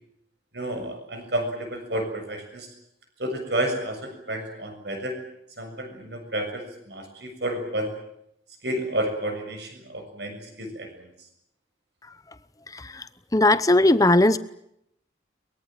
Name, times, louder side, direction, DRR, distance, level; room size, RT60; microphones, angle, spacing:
voice 1, 0.5-2.7 3.2-5.2 5.6-7.9 8.6-11.1, right 1 dB, 65° right, 5 dB, 7.2 m, -31 dB
voice 2, 12.0-12.4 12.7-14.4, left 2 dB, 20° left, 14 dB, 0.9 m, -20 dB
23.5 x 22.0 x 9.2 m, 0.77 s
head